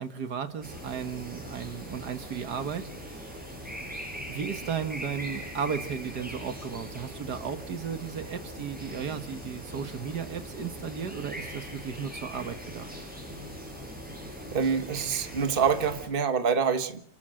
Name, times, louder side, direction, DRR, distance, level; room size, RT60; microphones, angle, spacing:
voice 1, 0.0-3.3 4.3-12.9, right 7 dB, 70° right, 10 dB, 2.0 m, -35 dB
sound 1, 0.6-16.1, equal, 5° right, 7.9 m, -41 dB
voice 2, 14.5-17.0, right 6 dB, 35° right, 9 dB, 1.6 m, -26 dB
28.5 x 13.0 x 7.6 m, 0.65 s
omnidirectional pair, 1.8 m